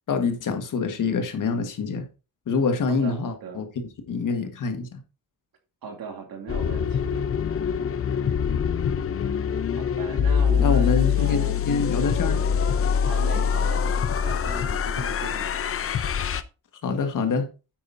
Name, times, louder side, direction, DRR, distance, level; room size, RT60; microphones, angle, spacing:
voice 1, 0.1-2.1 2.5-5.0 10.6-12.4 16.8-17.5, left 4 dB, 55° left, 1.6 m, -26 dB
voice 2, 2.9-3.6 5.8-7.3 9.8-11.6 13.0-15.5, right 5 dB, 70° right, 2.8 m, -38 dB
sound 1, 6.5-16.4, left 7 dB, 35° left, 0.6 m, -24 dB
9.2 x 8.6 x 2.7 m
cardioid pair, 120°, 37 cm